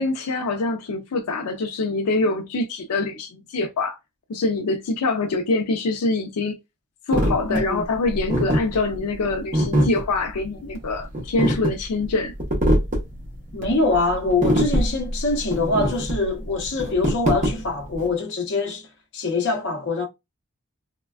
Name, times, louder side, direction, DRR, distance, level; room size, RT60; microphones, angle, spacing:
voice 1, 0.0-4.0 4.3-6.6 7.1-12.3, left 3 dB, 90° left, 0.5 m, -24 dB
sound 1, 7.1-18.1, equal, 35° right, 0.7 m, -24 dB
voice 2, 7.5-7.8 13.5-18.9 19.1-20.1, left 3 dB, 55° left, 0.7 m, -24 dB
3.1 x 2.2 x 2.3 m
head